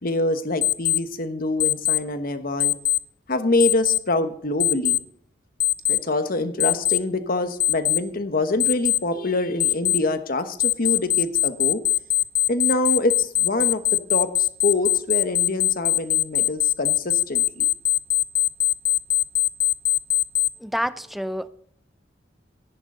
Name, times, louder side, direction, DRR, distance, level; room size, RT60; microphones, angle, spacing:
voice 1, 0.0-2.7 3.3-5.0 5.9-11.8 12.5-17.7, left 2 dB, 50° left, 1.1 m, -25 dB
Alarm, 0.6-1.0 1.6-2.0 2.6-3.0 3.6-4.0 4.6-5.0 5.6-6.0 6.6-7.0 7.6-8.0 8.6-9.0 9.6-10.0 10.6-20.5, left 14 dB, 65° left, 0.6 m, -20 dB
voice 2, 20.6-21.5, equal, ahead, 0.5 m, -28 dB
15.5 x 10.0 x 3.8 m
head